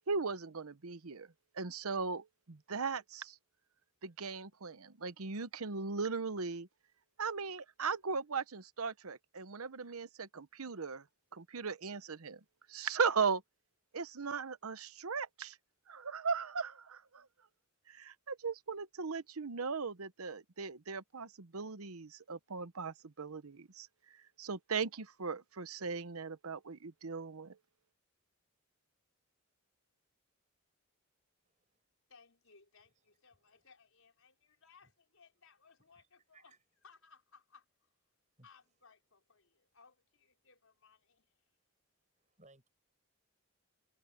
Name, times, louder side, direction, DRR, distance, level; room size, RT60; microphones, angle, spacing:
voice 1, 0.1-1.3 1.5-3.4 4.0-6.7 7.2-11.0 11.3-12.4 12.7-13.4 13.9-15.6 15.9-17.3 17.9-23.9 24.4-27.6, right 5 dB, 85° right, 0.9 m, -38 dB
voice 2, 31.5-31.9 33.3-33.6 35.9-36.1 36.3-36.6 38.4-38.5 42.2-42.7, right 2 dB, 35° right, 7.3 m, -65 dB
voice 3, 32.1-36.5 36.8-37.9 38.4-41.5, left 5 dB, 70° left, 4.8 m, -64 dB
head